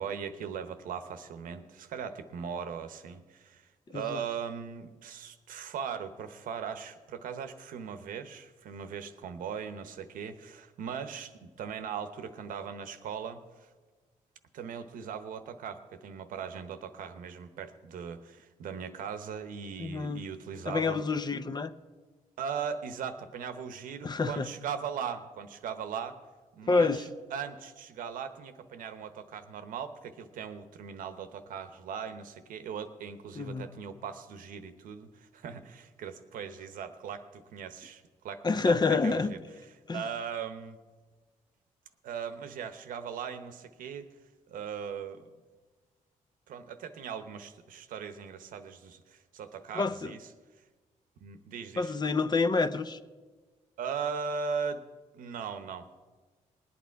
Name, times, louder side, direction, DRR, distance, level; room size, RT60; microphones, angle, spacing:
voice 1, 0.0-13.7 14.5-21.0 22.4-26.2 26.5-26.9 27.3-38.7 39.0-39.4 39.9-40.8 42.0-44.1 44.5-45.3 46.5-50.2 51.2-51.9 53.8-54.8 55.1-55.9, right 7 dB, 85° right, 9 dB, 0.9 m, -39 dB
voice 2, 3.9-4.2 19.8-20.2 20.7-21.7 24.0-24.5 26.7-27.0 33.4-33.7 38.4-39.3 39.9-40.0 49.7-50.2 51.8-53.0, left 4 dB, 30° left, 12 dB, 0.6 m, -28 dB
20.0 x 8.8 x 4.6 m, 1.3 s
cardioid pair, 85°, 14 cm